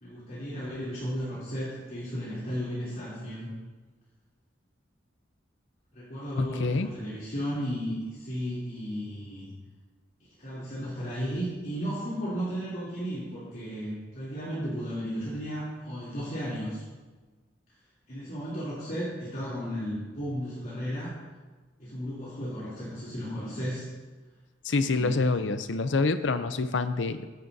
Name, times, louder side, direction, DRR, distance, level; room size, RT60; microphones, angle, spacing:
voice 1, 0.0-3.5 5.9-9.5 10.4-16.8 18.1-21.1 21.8-23.8 24.7-25.2, equal, 50° left, -10 dB, 3.2 m, -34 dB
voice 2, 6.4-6.9 24.6-27.3, left 3 dB, 70° left, 11 dB, 0.6 m, -27 dB
15.5 x 10.5 x 2.7 m, 1.3 s
head